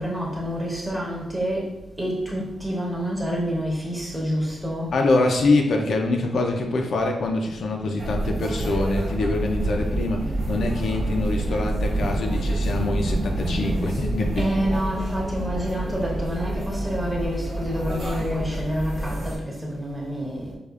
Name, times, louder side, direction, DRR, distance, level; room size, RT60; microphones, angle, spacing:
voice 1, 0.0-5.0 14.4-20.6, equal, 10° right, -3 dB, 0.9 m, -28 dB
voice 2, 4.9-14.5, left 2 dB, 70° left, 2 dB, 0.4 m, -24 dB
sound 1, 8.0-19.4, right 1 dB, 75° right, 1.0 m, -27 dB
4.7 x 2.3 x 2.4 m, 0.91 s
wide cardioid pair, 125°, 0 cm